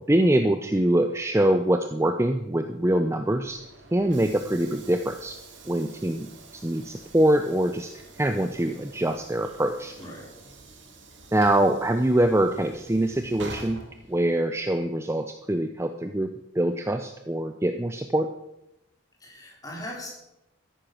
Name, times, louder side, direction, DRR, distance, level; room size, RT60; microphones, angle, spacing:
voice 1, 0.1-3.6 3.9-5.3 5.7-6.3 6.5-7.9 8.2-9.9 11.3-13.8 14.1-18.3, right 1 dB, 15° right, 7 dB, 0.5 m, -24 dB
Train / Sliding door, 3.2-14.6, right 3 dB, 60° right, 2.5 m, -47 dB
voice 2, 19.2-20.1, left 1 dB, 20° left, -2 dB, 3.9 m, -39 dB
13.5 x 10.0 x 6.1 m, 0.88 s
head